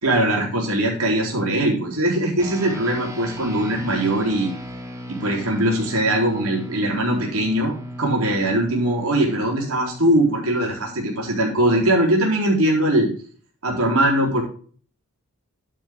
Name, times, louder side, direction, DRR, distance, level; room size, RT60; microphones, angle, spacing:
voice 1, 0.0-4.5 5.1-13.1 13.6-14.4, right 1 dB, 80° right, -1 dB, 3.9 m, -21 dB
sound 1, 2.4-12.0, equal, 15° right, 1.6 m, -37 dB
12.0 x 7.4 x 3.7 m, 0.43 s
head